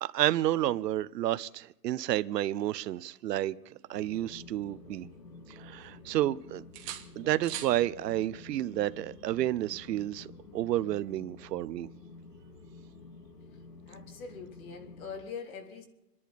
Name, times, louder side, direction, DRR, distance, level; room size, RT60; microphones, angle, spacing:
voice 1, 0.0-3.6 3.9-5.1 5.5-6.6 7.2-10.3 10.5-11.9, right 13 dB, 75° right, 0.8 m, -30 dB
sound 1, 3.6-5.1 5.5-6.3 6.7-7.8 9.7-9.9, right 12 dB, 20° right, 0.9 m, -46 dB
sound 2, 3.9-15.2, left 3 dB, 70° left, 2.3 m, -50 dB
voice 2, 13.9-15.9, left 5 dB, 55° left, 3.6 m, -43 dB
28.0 x 11.0 x 4.3 m
hypercardioid pair, 175°, 50 cm